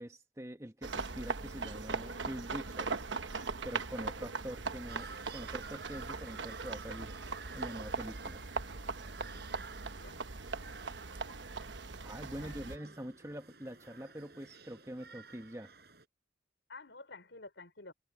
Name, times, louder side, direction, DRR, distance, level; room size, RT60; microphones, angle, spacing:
voice 1, 0.0-3.1 3.6-7.1 7.5-8.4 12.0-15.7, equal, 15° right, 1.6 m, -45 dB
sound 1, 0.8-12.8, right 4 dB, 90° right, 1.1 m, -40 dB
sound 2, 4.9-16.0, right 5 dB, 60° right, 5.5 m, -53 dB
voice 2, 9.2-9.6 10.0-10.3 12.2-12.8 16.7-17.9, left 3 dB, 85° left, 4.4 m, -52 dB
head